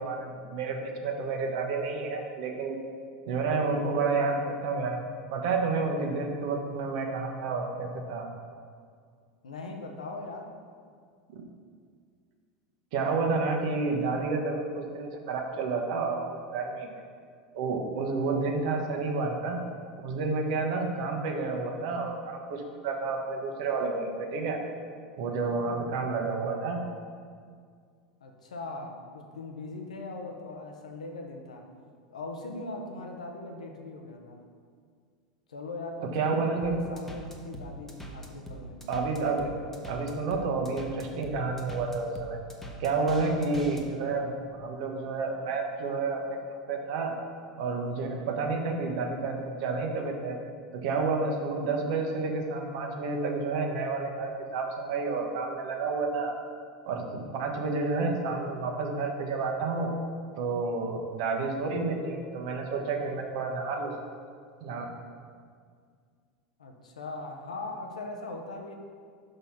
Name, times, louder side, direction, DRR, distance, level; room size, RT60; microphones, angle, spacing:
voice 1, 0.0-2.8 3.3-5.0 5.3-8.3 11.3-11.4 12.9-16.9 17.5-19.6 20.0-24.6 25.2-26.8 36.1-36.8 38.9-39.5 39.9-42.4 42.8-44.3 44.6-47.1 47.6-50.4 50.7-56.3 56.9-59.9 60.4-64.0 64.6-64.9, right 3 dB, 55° right, 2 dB, 1.1 m, -30 dB
voice 2, 9.4-10.6 28.2-31.7 32.1-34.4 35.5-38.8 66.6-68.7, left 2 dB, 75° left, 3 dB, 0.9 m, -40 dB
sound 1, 36.6-43.8, right 1 dB, 10° left, 1.1 m, -42 dB
5.7 x 5.5 x 5.5 m, 2.1 s
figure-of-eight pair, 80°, 4 cm